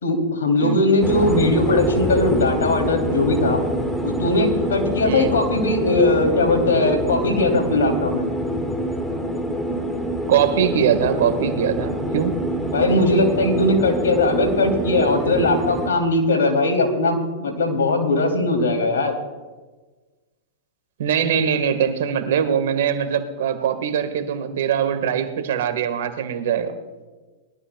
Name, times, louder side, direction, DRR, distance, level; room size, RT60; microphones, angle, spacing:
voice 1, 0.0-3.6 4.0-8.3 12.7-19.1, left 2 dB, 80° left, 3 dB, 2.9 m, -19 dB
sound 1, 1.0-15.9, equal, 5° left, 1.7 m, -25 dB
voice 2, 5.0-5.4 10.3-12.3 21.0-26.7, right 8 dB, 70° right, 9 dB, 1.5 m, -22 dB
21.5 x 12.5 x 2.3 m, 1.3 s
hypercardioid pair, 110°, 0 cm